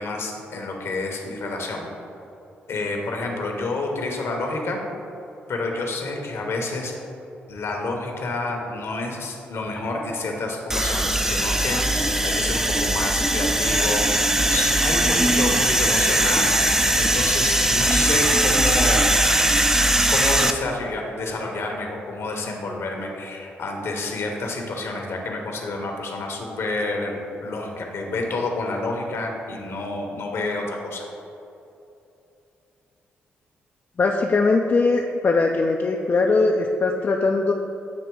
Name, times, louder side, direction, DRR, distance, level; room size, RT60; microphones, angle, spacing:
voice 1, 0.0-1.8 2.7-4.8 5.5-6.9 7.5-19.0 20.1-31.1, left 2 dB, 60° left, 1 dB, 1.1 m, -29 dB
sound 1, 10.7-20.5, right 1 dB, 10° right, 0.5 m, -20 dB
voice 2, 34.0-37.5, left 3 dB, 45° left, 1 dB, 0.4 m, -20 dB
8.2 x 3.0 x 4.7 m, 2.8 s
hypercardioid pair, 45°, 5 cm